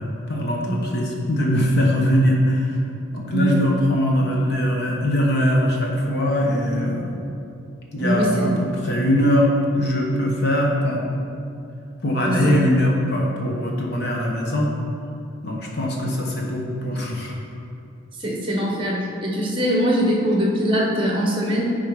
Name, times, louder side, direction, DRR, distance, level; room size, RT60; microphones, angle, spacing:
voice 1, 0.0-2.8 3.1-7.2 7.9-9.5 9.7-11.1 12.0-14.7 15.4-17.4, equal, 50° left, -2 dB, 1.2 m, -21 dB
voice 2, 8.0-8.5 12.2-12.6 18.2-21.7, equal, 25° right, -2 dB, 1.2 m, -22 dB
10.5 x 4.1 x 5.0 m, 2.6 s
head